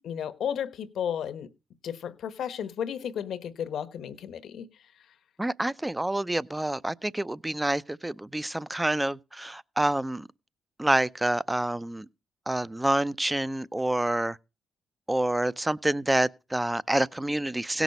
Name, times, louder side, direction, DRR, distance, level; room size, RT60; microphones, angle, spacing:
voice 1, 0.0-1.5 1.8-4.7, left 8 dB, 70° left, 1.1 m, -33 dB
voice 2, 5.4-10.3 10.8-12.1 12.5-14.4 15.1-17.8, right 1 dB, 10° right, 0.5 m, -27 dB
17.0 x 6.1 x 5.3 m
cardioid pair, 90°, 0 cm